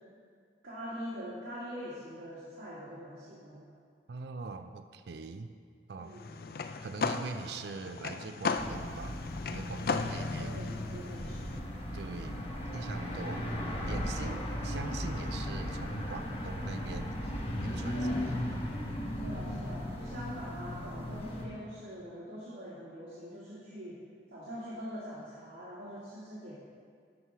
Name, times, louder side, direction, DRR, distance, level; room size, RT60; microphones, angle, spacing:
voice 1, 0.6-3.7 6.0-6.4 9.9-11.7 14.2-14.4 17.8-18.3 19.2-24.0 24.3-26.5, equal, 90° right, -10 dB, 2.1 m, -44 dB
voice 2, 4.1-5.5 5.9-6.2 6.8-9.2 9.5-10.6 11.9-12.4 12.7-13.5 13.9-18.6 19.3-19.4, right 4 dB, 70° right, 8 dB, 0.4 m, -42 dB
sound 1, 6.1-11.6, left 4 dB, 55° left, 0.4 m, -36 dB
sound 2, 8.6-21.5, left 1 dB, 35° left, 1.3 m, -37 dB
12.5 x 4.7 x 5.7 m, 2.1 s
head